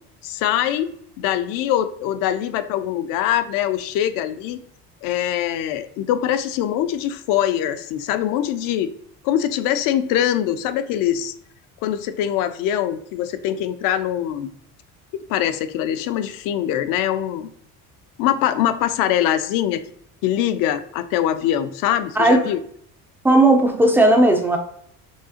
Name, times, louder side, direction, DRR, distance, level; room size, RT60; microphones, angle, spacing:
voice 1, 0.2-0.9 1.2-4.6 5.0-8.9 9.2-11.3 11.8-14.5 15.3-17.5 18.2-19.8 20.2-22.6, left 11 dB, 65° left, 11 dB, 0.5 m, -23 dB
voice 2, 23.2-24.6, right 1 dB, 5° right, 3 dB, 0.3 m, -15 dB
6.4 x 2.7 x 2.7 m, 0.67 s
cardioid pair, 165°, 36 cm